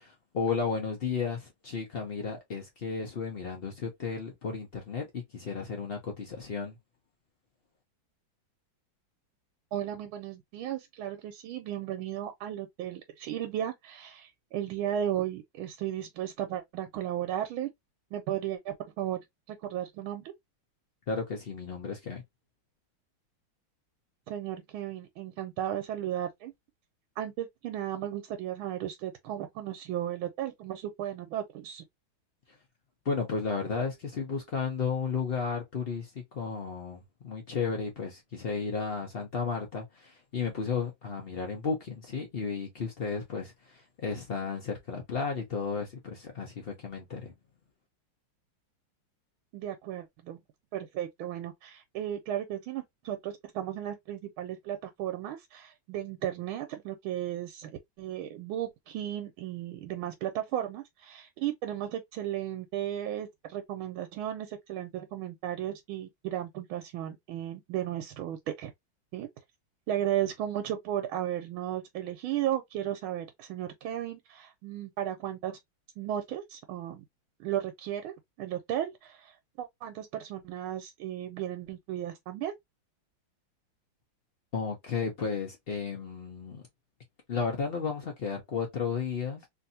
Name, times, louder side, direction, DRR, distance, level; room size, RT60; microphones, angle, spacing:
voice 1, 0.0-6.8 21.1-22.2 33.0-47.3 84.5-86.7 87.3-89.5, left 5 dB, 85° left, 0.5 m, -33 dB
voice 2, 9.7-17.7 18.1-19.2 19.5-20.3 24.3-26.5 27.2-31.8 49.5-50.4 50.7-57.7 58.0-68.7 69.1-69.3 69.9-75.6 76.0-77.0 77.4-82.5, right 11 dB, 90° right, 1.5 m, -35 dB
3.2 x 2.6 x 2.6 m
omnidirectional pair, 2.2 m